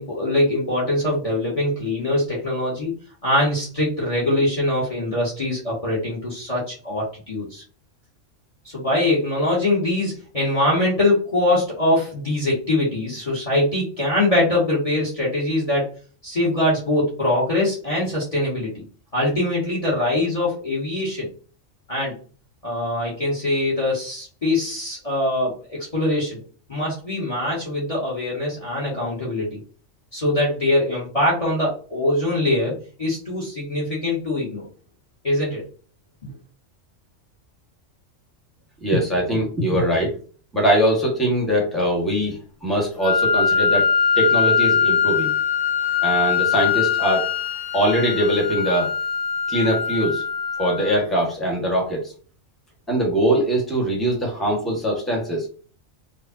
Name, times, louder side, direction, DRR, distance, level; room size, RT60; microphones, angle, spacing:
voice 1, 0.0-2.9 3.2-7.6 8.6-15.9 16.2-18.8 19.1-21.3 21.9-22.1 22.6-26.4 26.7-29.6 30.1-34.7 35.2-35.6 36.2-36.3, left 1 dB, 30° left, -3 dB, 1.2 m, -23 dB
voice 2, 38.8-40.1 40.5-43.9 44.2-45.3 46.0-47.3 47.7-48.9 49.5-50.2 50.6-52.1 52.9-55.5, right 1 dB, ahead, -2 dB, 1.4 m, -22 dB
Wind instrument woodwind instrument, 43.0-51.0, left 7 dB, 55° left, 1.4 m, -22 dB
4.9 x 2.3 x 2.7 m, 0.39 s
omnidirectional pair, 1.3 m